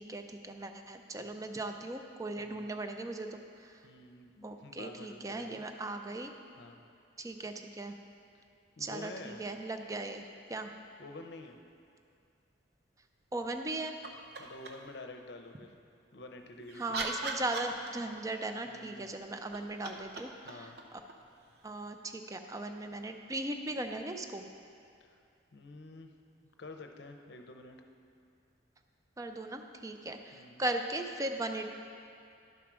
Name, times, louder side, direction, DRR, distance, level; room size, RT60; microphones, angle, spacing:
voice 1, 0.0-3.8 4.4-6.3 7.2-7.9 8.8-10.7 13.3-13.9 16.8-20.7 21.6-24.4 29.2-31.7, right 2 dB, 15° right, 6 dB, 0.4 m, -38 dB
voice 2, 2.4-2.7 3.8-5.6 6.6-6.9 8.8-9.4 11.0-11.6 14.4-15.7 16.1-17.0 18.7-19.2 20.4-20.8 25.0-25.2 25.5-26.1 26.6-27.8 30.3-30.6, left 2 dB, 60° left, 5 dB, 0.7 m, -48 dB
sound 1, 14.0-15.0 16.4-18.3 19.3-21.9 24.0-24.1, right 3 dB, 55° right, 0.7 m, -41 dB
11.0 x 4.8 x 6.1 m, 2.5 s
head